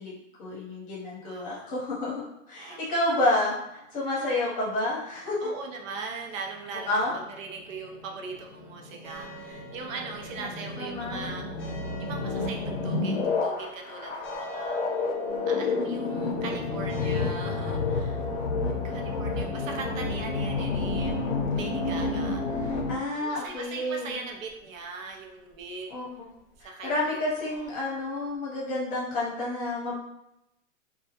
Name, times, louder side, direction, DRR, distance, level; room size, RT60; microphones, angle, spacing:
voice 1, 0.0-2.2 2.5-5.5 6.9-7.1 10.4-10.5 10.8-11.4 18.6-18.8 22.9-24.2 25.9-26.1 26.6-29.9, left 1 dB, 20° left, -6 dB, 0.8 m, -30 dB
voice 2, 1.2-1.7 2.6-2.9 4.1-4.3 5.4-11.5 12.0-15.1 15.5-18.2 18.8-22.8 23.1-25.9 26.6-27.7, right 4 dB, 70° right, 1 dB, 0.7 m, -40 dB
sound 1, 6.5-23.0, left 3 dB, 65° left, 0.6 m, -30 dB
sound 2, 9.0-28.3, right 5 dB, 5° left, 0.4 m, -49 dB
2.2 x 2.1 x 2.8 m, 0.87 s
hypercardioid pair, 135°, 41 cm